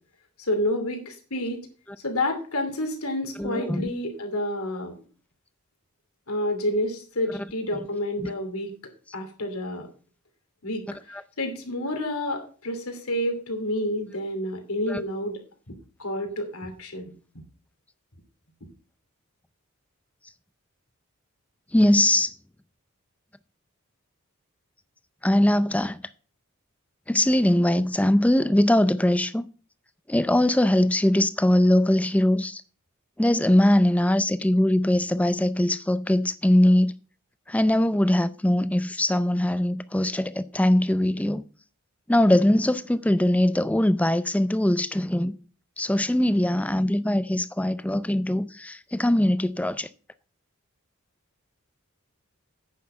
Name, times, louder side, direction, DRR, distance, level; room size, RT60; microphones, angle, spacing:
voice 1, 0.4-1.7 2.0-5.0 6.3-8.7 9.1-9.9 10.6-15.4 15.7-17.4, left 1 dB, 80° left, 2.8 m, -29 dB
voice 2, 3.4-3.9 8.2-8.3 11.1-11.2 14.9-15.0 21.7-22.3 25.2-26.0 27.1-29.5 30.1-32.6 33.2-36.9 37.5-41.4 42.1-45.3 45.8-49.9, left 1 dB, 5° left, 0.4 m, -21 dB
9.5 x 6.5 x 5.7 m
head